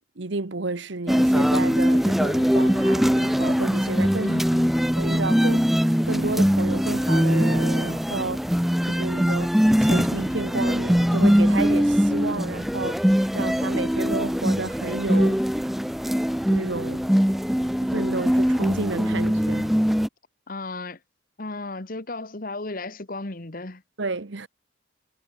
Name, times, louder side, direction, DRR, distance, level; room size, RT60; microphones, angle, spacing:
voice 1, 0.2-4.4 5.0-8.5 8.9-15.4 16.5-17.1 17.8-19.7 24.0-24.5, right 3 dB, 70° right, 1.1 m, -31 dB
sound 1, 1.1-20.1, equal, ahead, 0.4 m, -22 dB
voice 2, 4.2-4.7 20.5-21.0 21.4-23.8, left 2 dB, 45° left, 1.5 m, -34 dB
head